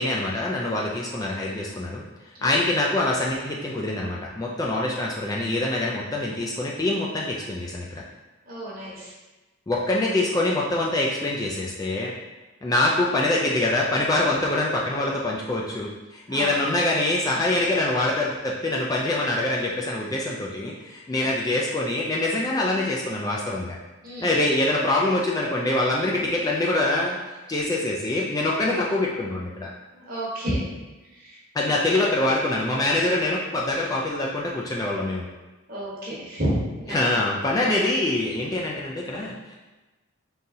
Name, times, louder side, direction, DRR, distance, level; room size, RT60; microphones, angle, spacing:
voice 1, 0.0-2.0 2.4-8.0 9.7-12.1 12.6-23.8 24.2-27.2 27.5-29.7 31.5-35.3 36.9-39.6, left 2 dB, 15° left, -3 dB, 0.3 m, -24 dB
voice 2, 8.5-9.1 16.3-16.5 21.1-21.3 24.0-24.3 28.6-28.7 29.9-30.7 31.1-31.8 35.7-37.1, equal, 40° right, -6 dB, 1.2 m, -31 dB
4.1 x 3.8 x 2.7 m, 1.2 s
head